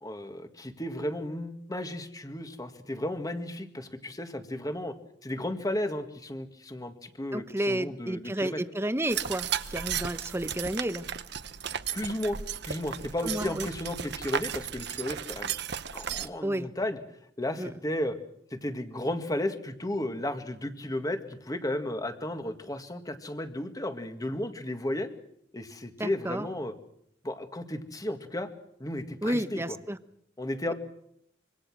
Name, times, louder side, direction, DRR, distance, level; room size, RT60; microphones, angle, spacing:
voice 1, 0.0-4.9 5.2-8.6 11.9-12.4 12.6-15.5 15.9-17.0 17.4-18.2 18.5-25.1 25.5-26.7 27.2-28.5 28.8-29.8 30.4-30.7, left 1 dB, 20° left, 7 dB, 1.9 m, -34 dB
voice 2, 7.3-11.1 13.2-13.7 16.4-16.7 17.6-17.7 26.0-26.5 29.2-30.0, right 1 dB, 15° right, 11 dB, 1.0 m, -31 dB
sound 1, 9.1-16.3, right 8 dB, 65° right, 1.0 m, -35 dB
26.0 x 24.5 x 6.2 m, 0.73 s
head